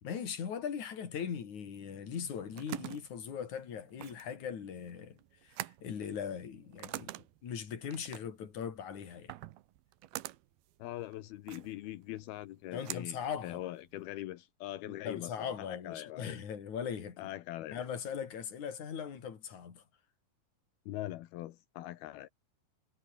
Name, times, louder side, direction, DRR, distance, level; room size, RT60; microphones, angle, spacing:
voice 1, 0.0-7.1 7.4-9.3 12.7-13.6 14.9-17.3 17.7-19.8, left 7 dB, 55° left, 4.3 m, -40 dB
sound 1, 2.1-14.0, right 16 dB, 85° right, 3.0 m, -47 dB
voice 2, 10.8-16.4 17.2-17.8 20.9-22.3, left 15 dB, 85° left, 3.0 m, -42 dB
omnidirectional pair, 4.3 m